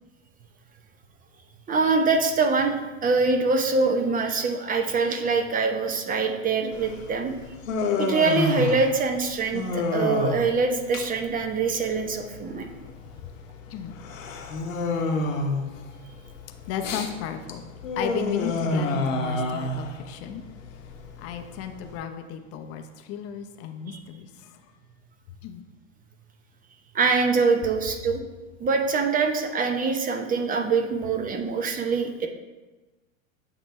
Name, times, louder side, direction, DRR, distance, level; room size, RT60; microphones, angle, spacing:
voice 1, 1.7-7.3 8.0-12.7 26.9-28.2 28.6-32.3, right 4 dB, 20° right, 4 dB, 0.8 m, -24 dB
Human voice, 6.7-22.0, left 2 dB, 75° left, 1.1 m, -29 dB
voice 2, 16.7-17.7 18.0-20.4 21.2-24.5 25.4-25.6, left 8 dB, 35° left, 6 dB, 0.7 m, -34 dB
8.5 x 2.9 x 4.5 m, 1.2 s
hypercardioid pair, 95°, 39 cm